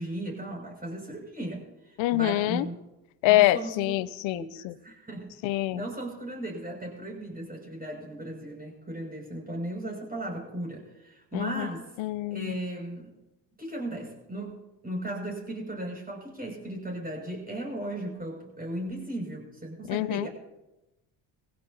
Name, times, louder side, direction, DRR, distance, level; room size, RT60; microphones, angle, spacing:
voice 1, 0.0-2.7 3.3-3.7 4.2-5.3 5.7-11.9 12.3-13.1 13.6-14.5 14.8-20.3, right 1 dB, 20° right, 0 dB, 6.7 m, -36 dB
voice 2, 2.0-2.7 3.2-4.7 5.4-5.8 11.3-11.7 12.0-12.6 19.9-20.3, left 17 dB, 70° left, 19 dB, 0.7 m, -25 dB
20.5 x 16.0 x 2.9 m, 0.97 s
hypercardioid pair, 60°, 47 cm